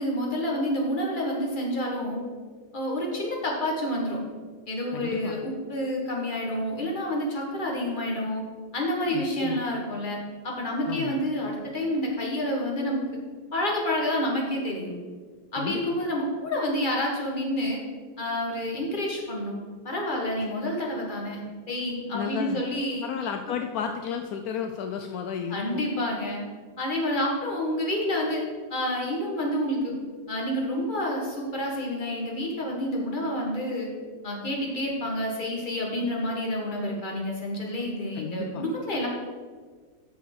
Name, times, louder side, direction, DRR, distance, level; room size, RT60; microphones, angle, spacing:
voice 1, 0.0-2.2 2.7-4.2 4.7-8.4 8.7-10.2 10.4-13.0 13.5-14.9 15.5-17.8 18.2-19.5 19.8-21.4 21.7-23.1 25.5-26.4 26.8-28.4 28.7-30.0 30.3-33.9 34.2-39.1, left 1 dB, 25° left, -1 dB, 1.7 m, -28 dB
voice 2, 4.9-5.3 9.1-9.6 10.9-11.2 15.5-15.8 22.1-22.6 23.0-25.8 38.1-38.6, left 7 dB, 75° left, 6 dB, 0.8 m, -33 dB
7.0 x 6.5 x 6.1 m, 1.5 s
omnidirectional pair, 2.0 m